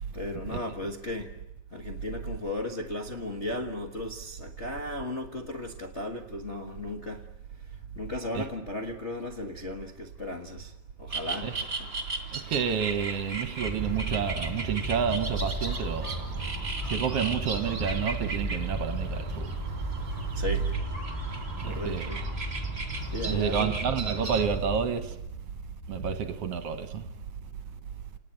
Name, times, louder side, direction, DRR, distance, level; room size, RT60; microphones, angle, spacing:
voice 1, 0.1-1.3 1.7-7.2 8.0-10.7 11.0-11.5 20.3-20.7 21.6-22.2 23.1-23.7, left 1 dB, 35° left, 1.1 m, -35 dB
sound 1, 11.1-24.5, right 3 dB, 20° right, 2.4 m, -37 dB
voice 2, 12.3-16.4 16.8-19.5 21.6-22.1 23.2-25.2 25.9-27.1, right 7 dB, 60° right, 1.9 m, -30 dB
sound 2, 13.6-24.9, right 1 dB, 10° left, 7.2 m, -35 dB
29.0 x 19.5 x 9.0 m
omnidirectional pair, 3.4 m